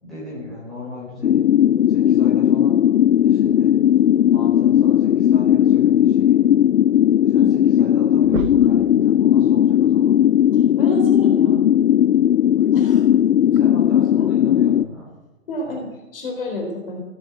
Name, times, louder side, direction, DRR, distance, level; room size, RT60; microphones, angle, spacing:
voice 1, 0.0-1.5 1.9-2.8 3.2-3.8 4.0-6.4 7.2-10.2 13.5-15.1 15.6-15.8, left 2 dB, ahead, -9 dB, 5.5 m, -36 dB
sound 1, 1.2-14.8, left 10 dB, 75° left, 0.5 m, -16 dB
sound 2, 7.8-7.9 8.2-8.9 10.6-10.7 12.5-12.7 13.5-13.6, right 7 dB, 85° right, 1.0 m, -30 dB
voice 2, 10.8-11.6 12.7-13.0 15.5-17.0, left 1 dB, 40° left, 1 dB, 4.1 m, -29 dB
16.5 x 10.5 x 7.8 m, 1.0 s
hypercardioid pair, 170°, 40 cm